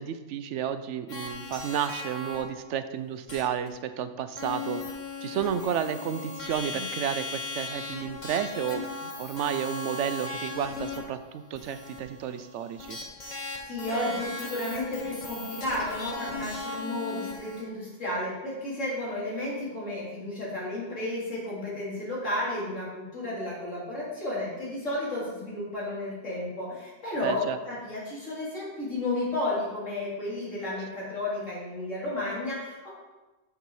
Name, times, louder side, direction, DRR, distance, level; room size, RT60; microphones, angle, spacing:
voice 1, 0.0-4.8 5.2-13.0 27.2-27.6, right 9 dB, 75° right, 11 dB, 0.9 m, -32 dB
sound 1, 1.1-2.4 3.3-3.4 3.7-3.8 4.4-17.6, left 3 dB, 40° left, 1.3 m, -37 dB
voice 2, 13.6-32.9, left 1 dB, 85° left, -7 dB, 3.5 m, -32 dB
7.3 x 6.7 x 4.6 m, 1.2 s
omnidirectional pair, 1.3 m